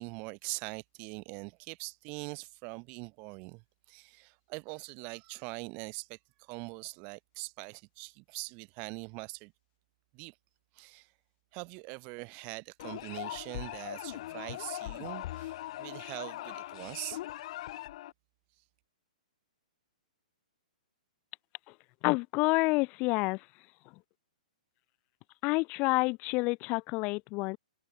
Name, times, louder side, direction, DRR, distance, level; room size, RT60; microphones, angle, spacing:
voice 1, 0.0-9.5 10.1-10.4 10.7-11.1 11.5-17.2, right 31 dB, 35° right, 4.1 m, -43 dB
sound 1, 12.8-18.1, left 15 dB, 50° left, 3.2 m, -40 dB
voice 2, 22.0-23.4 25.4-27.6, left 26 dB, 35° left, 2.2 m, -28 dB
hypercardioid pair, 140°, 4 cm